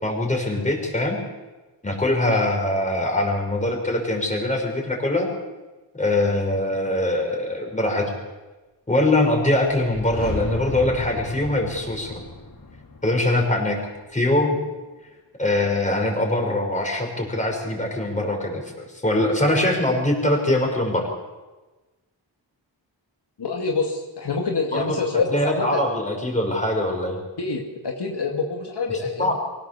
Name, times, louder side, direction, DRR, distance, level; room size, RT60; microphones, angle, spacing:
voice 1, 0.0-1.2 1.8-5.3 6.0-8.1 8.9-12.2 13.0-13.8 14.1-14.6 15.4-21.1 24.7-24.8 25.3-27.2 29.2-29.3, left 1 dB, 15° left, 1 dB, 5.8 m, -22 dB
sound 1, 9.7-14.5, left 3 dB, 45° left, 2.0 m, -35 dB
voice 2, 23.4-25.8 27.4-29.3, left 4 dB, 65° left, 0 dB, 2.3 m, -26 dB
25.0 x 17.5 x 7.0 m, 1.2 s
wide cardioid pair, 115°, 43 cm